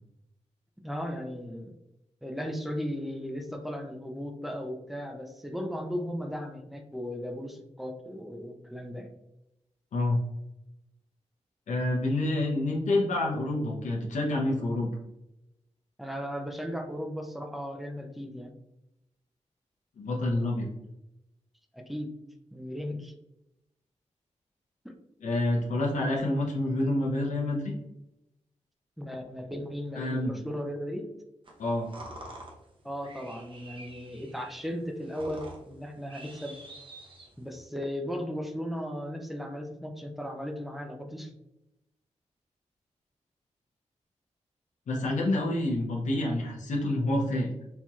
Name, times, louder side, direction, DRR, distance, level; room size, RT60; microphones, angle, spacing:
voice 1, 0.8-1.7 2.2-9.1 16.0-18.5 21.7-22.1 22.5-23.1 24.8-24.9 29.0-31.1 32.8-36.6 37.4-41.3, equal, ahead, 3 dB, 0.5 m, -36 dB
voice 2, 11.7-14.9 20.0-20.7 25.2-27.7 29.9-30.4 31.6-31.9 44.9-47.5, left 1 dB, 85° left, -2 dB, 0.7 m, -28 dB
sound 1, 31.4-37.7, right 1 dB, 45° right, 0.8 m, -48 dB
4.4 x 2.8 x 2.3 m, 0.89 s
wide cardioid pair, 110°, 12 cm